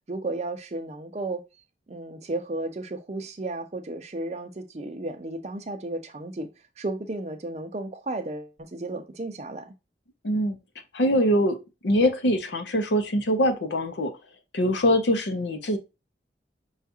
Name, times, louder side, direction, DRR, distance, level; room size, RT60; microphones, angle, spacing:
voice 1, 0.1-1.4 1.9-6.5 6.8-9.7, right 2 dB, 40° right, 0.5 m, -33 dB
voice 2, 10.2-10.6 10.9-11.6 11.8-14.1 14.5-15.8, equal, 85° left, 0.7 m, -23 dB
5.6 x 2.4 x 2.6 m
head